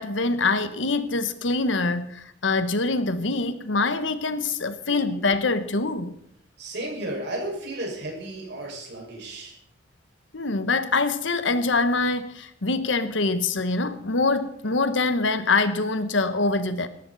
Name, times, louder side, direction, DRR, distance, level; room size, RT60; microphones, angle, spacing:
voice 1, 0.0-6.1 10.3-16.9, left 3 dB, 80° left, 1.2 m, -24 dB
voice 2, 6.6-9.6, right 1 dB, 65° right, 5.6 m, -33 dB
18.0 x 14.0 x 4.1 m
head